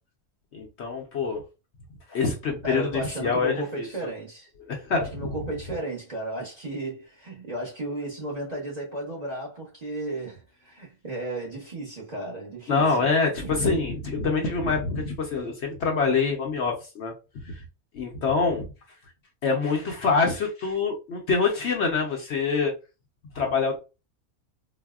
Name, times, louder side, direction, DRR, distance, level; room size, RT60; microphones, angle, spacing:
voice 1, 0.5-1.4 2.1-3.9 4.7-5.0 12.7-17.1 17.5-17.6 17.9-18.7 19.4-22.7 23.3-23.8, left 4 dB, 60° left, 0.8 m, -25 dB
voice 2, 2.6-4.5 4.9-13.1 13.4-13.6, right 2 dB, 35° right, 0.8 m, -34 dB
4.0 x 2.1 x 2.3 m
omnidirectional pair, 1.5 m